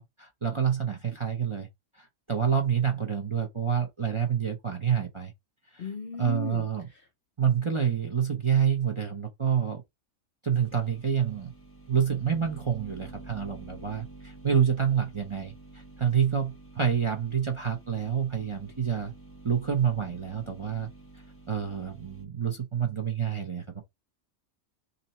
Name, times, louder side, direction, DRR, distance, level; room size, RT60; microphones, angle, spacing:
voice 1, 0.0-1.7 1.9-5.3 5.7-5.9 6.2-6.9 7.4-9.8 10.4-11.5 11.9-19.1 19.4-20.9 21.5-23.8, right 8 dB, 30° right, 0.6 m, -28 dB
voice 2, 5.8-6.6, left 5 dB, 55° left, 0.6 m, -35 dB
sound 1, 10.5-22.2, right 2 dB, 10° left, 0.9 m, -49 dB
2.7 x 2.6 x 4.2 m
omnidirectional pair, 1.4 m